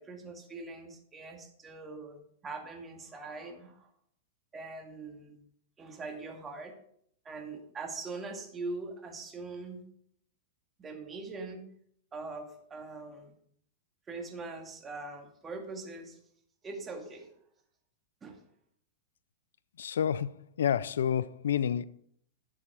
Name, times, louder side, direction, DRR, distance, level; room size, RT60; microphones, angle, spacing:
voice 1, 0.0-3.9 4.5-5.4 5.8-6.7 7.2-9.8 10.8-11.6 12.1-13.3 14.1-16.2 16.6-17.3 18.2-18.4, right 3 dB, 20° right, 2.1 m, -42 dB
voice 2, 19.8-21.9, left 9 dB, 85° left, 0.4 m, -29 dB
11.0 x 7.3 x 4.8 m
hypercardioid pair, 135°, 0 cm